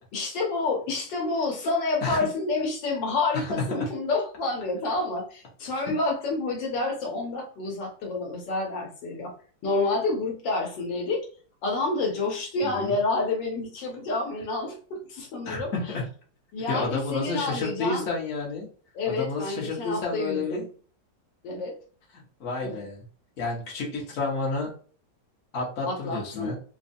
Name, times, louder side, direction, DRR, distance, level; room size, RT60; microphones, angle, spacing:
voice 1, 0.1-9.3 9.6-11.2 11.6-15.7 16.5-18.0 18.9-20.6 21.4-21.7 22.6-22.8 25.9-26.5, left 3 dB, 75° left, 1 dB, 1.6 m, -29 dB
voice 2, 3.3-3.8 12.6-13.0 15.4-16.0 16.7-18.7 19.1-20.6 22.4-23.0 23.4-24.7 25.5-26.6, left 3 dB, 45° left, -2 dB, 1.3 m, -30 dB
4.1 x 2.3 x 2.6 m, 0.41 s
omnidirectional pair, 2.0 m